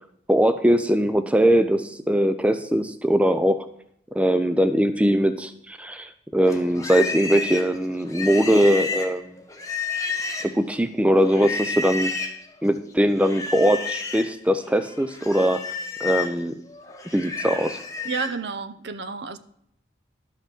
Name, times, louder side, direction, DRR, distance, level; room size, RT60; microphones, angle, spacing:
voice 1, 0.3-3.7 4.1-9.4 10.4-12.1 12.6-15.6 16.0-16.6 17.1-17.8, equal, 5° right, 0.4 m, -21 dB
Livestock farm animals working animals, 6.5-10.7 11.3-12.4 13.2-14.3 14.7-18.4, left 4 dB, 15° left, 1.0 m, -31 dB
voice 2, 18.0-19.4, right 5 dB, 60° right, 0.7 m, -30 dB
11.5 x 5.7 x 5.9 m
head